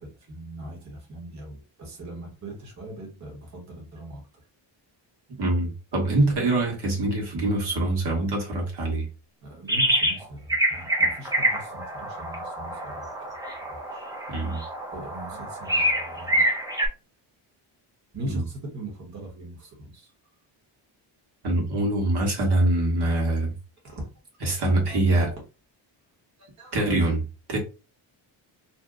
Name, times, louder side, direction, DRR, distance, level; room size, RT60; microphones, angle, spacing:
voice 1, 0.0-4.2 9.4-13.1 13.7-14.0 14.9-16.5 18.1-20.1 23.8-24.1 24.4-24.5 24.9-25.0 26.4-26.8, right 1 dB, 35° right, 1.1 m, -40 dB
voice 2, 5.4-9.1 14.3-14.6 18.2-18.4 21.4-23.5 24.4-25.3 26.7-27.6, right 2 dB, 55° right, 1.3 m, -24 dB
sound 1, 9.7-10.2 10.5-16.9, right 1 dB, 10° right, 0.5 m, -26 dB
2.7 x 2.1 x 3.6 m
wide cardioid pair, 170°, 48 cm